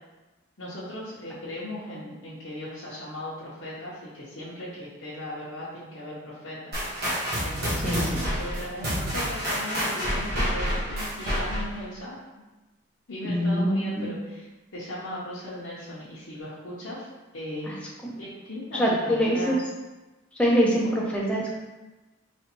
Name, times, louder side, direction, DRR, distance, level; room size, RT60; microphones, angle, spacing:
voice 1, 0.6-6.8 7.4-12.2 13.1-14.5 14.7-17.1 17.3-17.8 18.2-19.6 20.8-21.0, left 1 dB, 65° left, -9 dB, 0.9 m, -37 dB
sound 1, 6.7-11.8, equal, 50° right, 1.2 m, -28 dB
voice 2, 7.8-8.2 13.2-14.1 18.7-19.6 20.3-21.6, equal, 5° left, -4 dB, 0.6 m, -24 dB
4.2 x 3.1 x 2.9 m, 1.1 s
head